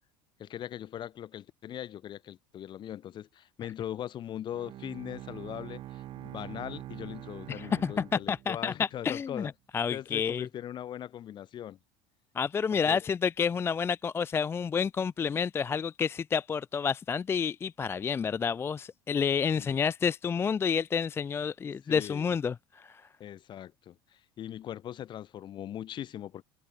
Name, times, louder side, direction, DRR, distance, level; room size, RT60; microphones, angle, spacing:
voice 1, 0.4-9.5 9.9-11.8 12.8-13.0 19.6-19.8 21.8-22.3 23.2-24.0 24.4-26.4, left 11 dB, 45° left, 1.2 m, -40 dB
Bowed string instrument, 4.5-8.9, right 14 dB, 50° right, 1.1 m, -44 dB
voice 2, 7.5-10.5 12.4-23.0, left 6 dB, 20° left, 0.3 m, -29 dB
supercardioid pair, 95°, 11 cm